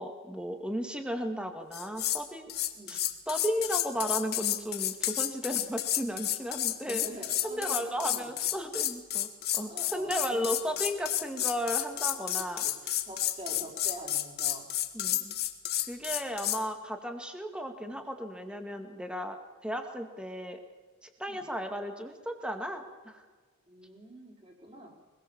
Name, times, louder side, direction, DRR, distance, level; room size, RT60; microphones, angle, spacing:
voice 1, 0.0-2.5 2.9-3.0 3.3-7.0 7.4-9.3 9.5-13.0 14.9-15.4 15.9-19.4 19.6-20.6 21.0-23.2, equal, 5° right, 5 dB, 2.1 m, -35 dB
sound 1, 1.7-2.2 2.5-16.6, left 13 dB, 45° left, 1.6 m, -31 dB
voice 2, 2.7-3.1 6.9-8.5 9.7-10.9 12.4-12.8 13.0-14.7 21.3-21.4 23.7-25.0, right 1 dB, 25° right, 0 dB, 4.7 m, -45 dB
25.0 x 21.0 x 7.4 m, 1.4 s
head